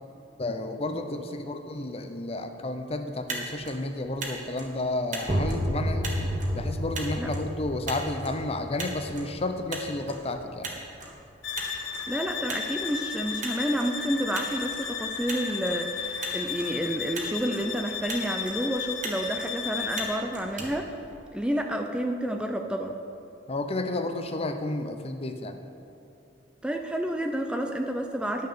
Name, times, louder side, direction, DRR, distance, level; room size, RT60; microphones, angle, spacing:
voice 1, 0.4-6.1 6.5-10.7 23.5-25.6, left 2 dB, 35° left, 7 dB, 0.6 m, -31 dB
Motor vehicle (road), 3.1-21.6, right 3 dB, 45° right, 1.5 m, -41 dB
sound 1, 5.2-10.8, equal, 25° right, 1.3 m, -32 dB
sound 2, 11.4-20.2, left 7 dB, 70° left, 1.1 m, -34 dB
voice 2, 12.1-21.0 21.3-23.0 26.6-28.5, right 1 dB, 5° right, 3 dB, 0.5 m, -30 dB
10.5 x 6.5 x 6.8 m, 2.7 s
head